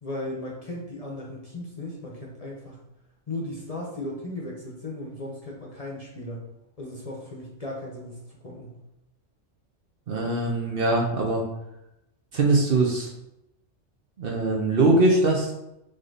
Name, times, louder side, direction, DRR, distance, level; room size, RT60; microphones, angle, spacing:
voice 1, 0.0-2.8 3.3-6.4 6.8-8.8, left 1 dB, 35° left, -2 dB, 0.8 m, -36 dB
voice 2, 10.1-11.4 12.3-13.1 14.2-15.5, right 2 dB, 55° right, -1 dB, 0.8 m, -22 dB
4.9 x 2.6 x 3.9 m, 0.86 s
omnidirectional pair, 1.3 m